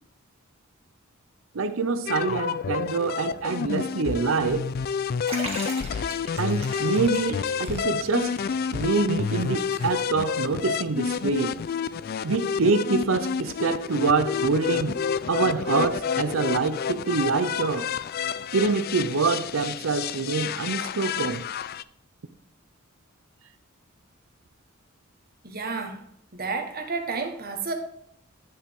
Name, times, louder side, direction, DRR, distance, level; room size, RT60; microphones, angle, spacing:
voice 1, 1.5-4.7 6.4-8.3 8.7-11.5 12.2-15.0 15.3-17.9 18.5-21.4, right 4 dB, 75° right, 0.6 m, -25 dB
sound 1, 2.1-21.8, left 6 dB, 45° left, 0.3 m, -29 dB
Liquid, 5.3-10.4 10.6-10.7 11.7-11.8, right 3 dB, 30° right, 1.7 m, -40 dB
voice 2, 25.4-26.1 26.3-27.7, right 4 dB, 45° right, 1.4 m, -31 dB
10.0 x 7.1 x 3.6 m
head